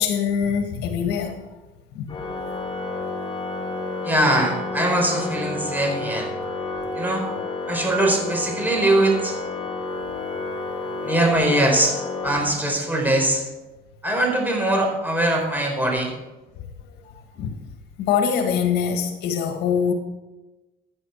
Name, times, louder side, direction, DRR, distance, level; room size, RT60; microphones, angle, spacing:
voice 1, 0.0-1.4 1.9-2.2 17.4-17.6 18.0-19.9, left 7 dB, 80° left, 5 dB, 1.7 m, -23 dB
Organ, 2.1-13.0, left 3 dB, 30° left, 3.0 m, -30 dB
voice 2, 4.0-6.3 6.9-7.2 7.7-9.3 11.0-12.0 12.2-13.4 14.0-16.1, right 1 dB, 10° right, 1 dB, 4.1 m, -21 dB
15.0 x 10.0 x 4.6 m, 1.1 s
cardioid pair, 110°, 17 cm